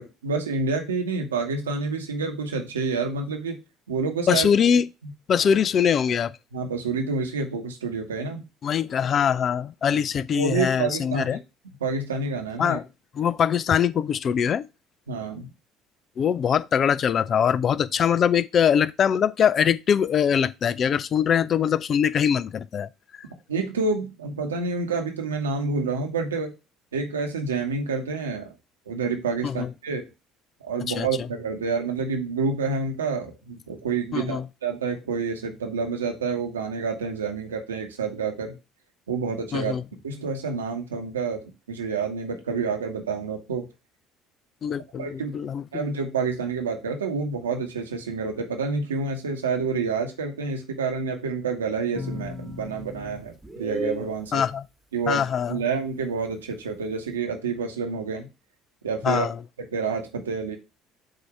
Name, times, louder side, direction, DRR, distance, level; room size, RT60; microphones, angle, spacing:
voice 1, 0.0-3.6 3.9-4.5 6.5-8.4 9.9-10.0 10.3-11.4 11.8-12.8 15.1-15.5 23.5-26.5 26.9-28.5 28.9-30.0 30.6-38.5 39.1-39.8 40.0-43.7 45.0-45.4 45.7-54.4 54.9-58.3 58.8-59.3 59.7-60.6, right 4 dB, 85° right, 1.1 m, -28 dB
voice 2, 4.3-4.9 5.3-6.3 8.6-11.4 12.6-12.9 13.1-14.6 16.2-22.9 29.4-29.7 31.0-31.1 34.1-34.4 39.5-39.8 44.6-45.8 54.3-54.6 55.1-55.6 59.0-59.4, left 8 dB, 45° left, 0.4 m, -22 dB
sound 1, 51.9-54.2, equal, 5° right, 1.3 m, -34 dB
7.8 x 2.8 x 4.7 m
figure-of-eight pair, 60°, 0 cm